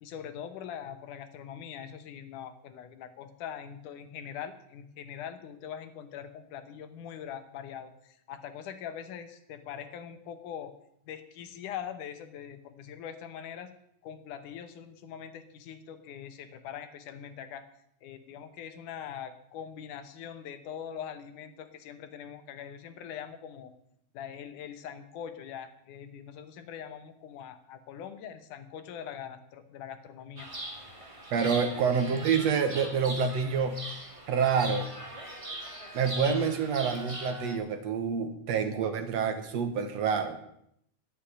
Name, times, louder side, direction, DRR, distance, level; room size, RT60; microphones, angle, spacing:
voice 1, 0.0-10.7 11.1-13.7 14.0-17.7 18.0-23.7 24.1-30.5 31.6-31.7, left 8 dB, 80° left, 10 dB, 2.6 m, -42 dB
Chirp tweet, 30.4-37.6, right 1 dB, 10° right, 1.7 m, -41 dB
voice 2, 31.3-33.8 34.3-34.9 35.9-40.4, right 6 dB, 65° right, 8 dB, 2.1 m, -27 dB
11.0 x 8.4 x 9.9 m, 0.74 s
omnidirectional pair, 3.6 m